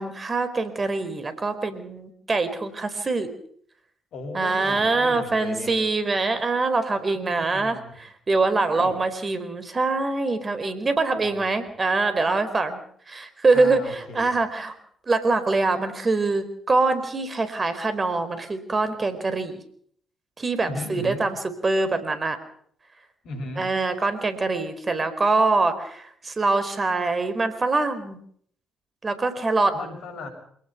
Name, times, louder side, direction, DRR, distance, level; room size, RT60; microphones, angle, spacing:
voice 1, 0.0-3.3 4.3-12.8 13.1-14.7 15.1-19.6 20.4-21.4 21.6-22.4 23.6-28.2 29.0-29.7, right 3 dB, 35° right, 11 dB, 4.4 m, -24 dB
voice 2, 4.1-5.8 7.1-7.9 8.5-8.9 11.2-11.7 13.5-14.4 20.6-21.2 23.2-23.7 29.7-30.3, left 2 dB, 65° left, 5 dB, 7.2 m, -37 dB
27.0 x 19.0 x 6.0 m, 0.63 s
hypercardioid pair, 45°, 0 cm